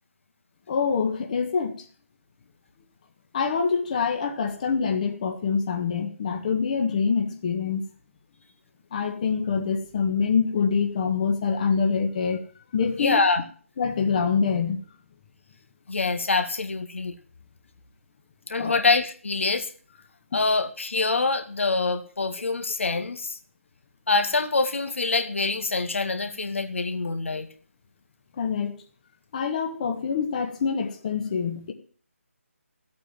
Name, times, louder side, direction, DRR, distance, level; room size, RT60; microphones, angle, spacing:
voice 1, 0.7-1.8 3.3-7.8 8.9-12.4 12.7-13.2 13.8-14.8 18.6-18.8 20.3-20.4 28.4-28.7 29.3-31.7, left 6 dB, 30° left, 1.7 m, -25 dB
voice 2, 13.0-13.4 15.9-17.2 18.5-19.7 20.3-23.4 24.1-27.5, left 3 dB, 60° left, 2.0 m, -25 dB
14.5 x 8.7 x 7.5 m
figure-of-eight pair, 155°, 8 cm